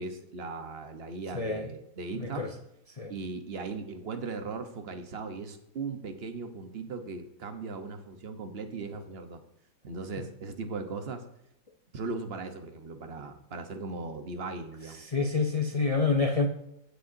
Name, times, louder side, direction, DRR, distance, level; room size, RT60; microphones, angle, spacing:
voice 1, 0.0-2.5 3.1-9.4 9.8-11.3 11.9-15.0, right 4 dB, 40° right, 7 dB, 1.0 m, -38 dB
voice 2, 1.3-1.7 2.2-2.5 3.0-3.1 15.0-16.5, left 4 dB, 55° left, 3 dB, 0.4 m, -27 dB
17.0 x 6.7 x 2.7 m, 0.82 s
omnidirectional pair, 2.0 m